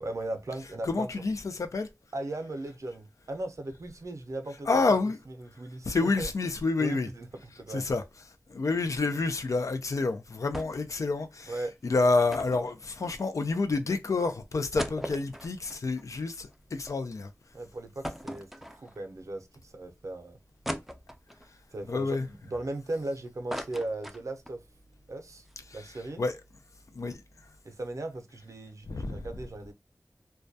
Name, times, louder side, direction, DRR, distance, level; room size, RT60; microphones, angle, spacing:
voice 1, 0.0-1.3 2.1-4.8 5.4-6.3 6.8-7.8 11.4-11.7 17.5-20.4 21.7-24.6 25.1-25.5 25.7-26.2 27.6-29.7, right 2 dB, 75° right, 0.5 m, -37 dB
voice 2, 0.8-1.9 4.7-5.2 5.8-7.1 7.7-8.0 8.5-11.5 11.8-17.3 21.9-22.3 25.7-25.8 26.2-26.4 26.9-27.2 28.9-29.3, left 3 dB, 80° left, 0.4 m, -28 dB
sound 1, 10.5-11.0 11.2-11.3 12.3-13.6 14.1-14.2 14.5-16.9 17.3-17.4 18.0-19.2 19.7-19.8 20.6-21.5 22.0-23.0 23.3-24.6 25.0-25.1 25.3-25.5, equal, 5° right, 0.3 m, -39 dB
2.2 x 2.2 x 2.5 m
wide cardioid pair, 50°, 5 cm